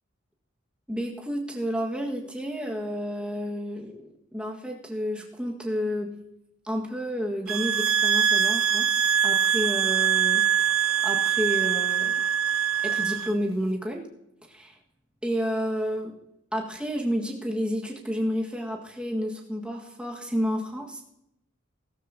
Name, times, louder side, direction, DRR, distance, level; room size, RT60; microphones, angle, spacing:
voice 1, 0.9-6.2 6.6-10.5 11.0-12.3 12.8-14.1 14.5-14.8 15.2-16.2 16.5-21.0, equal, 5° right, 0 dB, 1.8 m, -30 dB
sound 1, 7.5-13.3, right 8 dB, 80° right, 0.7 m, -23 dB
17.0 x 14.5 x 2.9 m, 0.81 s
head